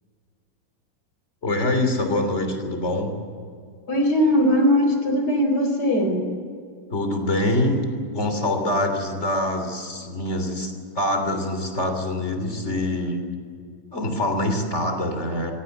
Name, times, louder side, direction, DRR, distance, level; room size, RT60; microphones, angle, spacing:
voice 1, 1.4-3.1 6.9-7.9 8.1-13.2 13.9-15.5, left 1 dB, 40° left, 5 dB, 3.5 m, -24 dB
voice 2, 3.9-6.3, equal, 65° left, 4 dB, 4.8 m, -20 dB
26.0 x 17.0 x 8.1 m, 2.2 s
omnidirectional pair, 1.9 m